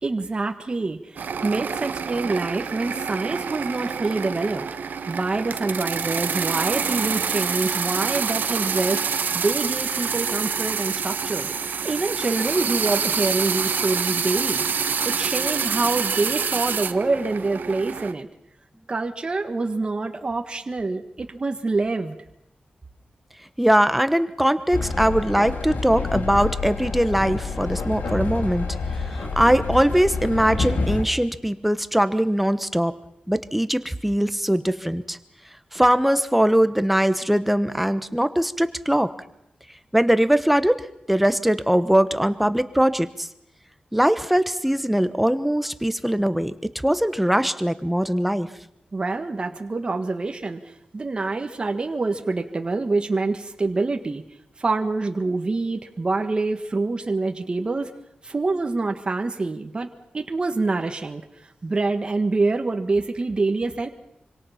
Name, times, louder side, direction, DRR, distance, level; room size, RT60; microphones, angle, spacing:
voice 1, 0.0-11.5 11.8-14.6 15.0-18.3 18.9-22.2 48.9-54.2 54.6-57.9 58.2-59.9 60.1-63.9, right 3 dB, 30° right, 4 dB, 1.5 m, -26 dB
sound 1, 1.2-18.1, right 6 dB, 85° right, 1.1 m, -27 dB
voice 2, 23.6-28.8 29.1-32.9 33.3-35.2 35.7-39.1 39.9-40.8 41.1-43.3 43.9-46.5 46.8-48.5, equal, 5° right, 11 dB, 1.1 m, -21 dB
Train, 24.7-31.0, left 4 dB, 85° left, 3.3 m, -28 dB
26.0 x 25.5 x 5.8 m, 0.81 s
wide cardioid pair, 160°, 3 cm